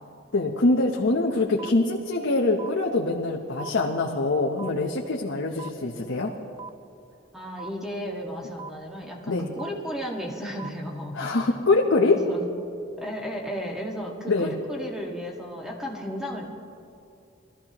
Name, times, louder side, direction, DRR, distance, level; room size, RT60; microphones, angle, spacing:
voice 1, 0.3-6.4 9.3-9.5 11.1-12.3 14.3-14.5, left 2 dB, 70° left, 0 dB, 0.9 m, -24 dB
sound 1, 1.6-1.7 2.6-2.7 3.6-3.7 4.6-4.7 5.6-5.7 6.6-6.7 7.6-7.7 8.6-8.7 9.6-9.7 10.6-10.7, right 5 dB, 25° right, 0.3 m, -38 dB
voice 2, 7.3-11.3 12.1-12.4 13.0-16.5, equal, 5° right, -1 dB, 1.7 m, -34 dB
21.5 x 14.0 x 3.0 m, 2.6 s
head